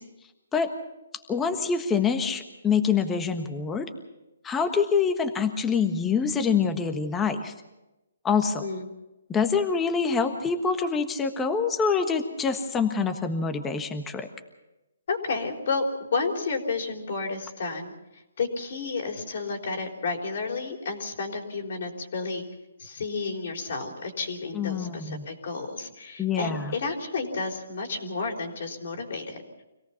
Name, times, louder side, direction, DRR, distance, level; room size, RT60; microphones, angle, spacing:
voice 1, 1.3-3.9 4.4-7.5 8.2-8.7 9.3-14.3 24.5-25.2 26.2-26.7, left 5 dB, 10° left, 7 dB, 1.4 m, -25 dB
voice 2, 15.1-15.8 16.1-22.4 22.8-29.4, left 4 dB, 55° left, 3 dB, 3.8 m, -31 dB
26.0 x 17.5 x 5.8 m, 0.99 s
hypercardioid pair, 155°, 0 cm